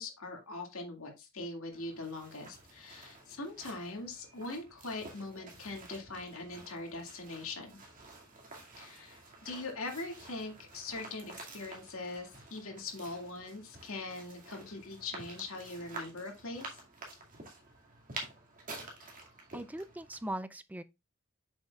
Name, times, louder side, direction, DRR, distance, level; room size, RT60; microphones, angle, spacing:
voice 1, 0.0-7.8 8.8-16.8, left 2 dB, 70° left, 2.2 m, -42 dB
sound 1, 1.7-20.3, right 2 dB, 35° right, 2.3 m, -50 dB
voice 2, 19.5-20.8, right 1 dB, 5° right, 0.4 m, -39 dB
8.4 x 6.4 x 2.4 m
head